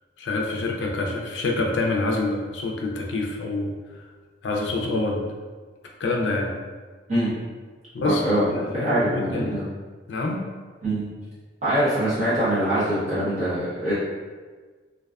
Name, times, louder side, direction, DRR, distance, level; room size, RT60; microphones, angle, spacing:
voice 1, 0.2-4.1 4.4-5.2 6.0-6.5 7.9-9.5 10.1-10.4, left 2 dB, 70° left, 0 dB, 0.4 m, -27 dB
voice 2, 8.0-8.5 8.7-9.6 10.8-11.0 11.6-13.9, right 1 dB, 35° right, -12 dB, 0.7 m, -23 dB
2.5 x 2.2 x 2.3 m, 1.5 s
head